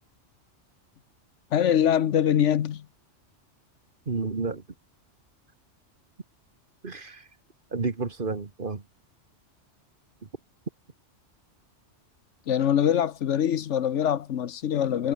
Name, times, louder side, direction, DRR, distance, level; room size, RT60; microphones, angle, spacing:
voice 1, 1.5-2.8 12.5-15.1, left 9 dB, 75° left, 1.2 m, -23 dB
voice 2, 4.1-4.6 6.8-7.2 7.7-8.8, right 4 dB, 45° right, 1.8 m, -30 dB
omnidirectional pair, 1.2 m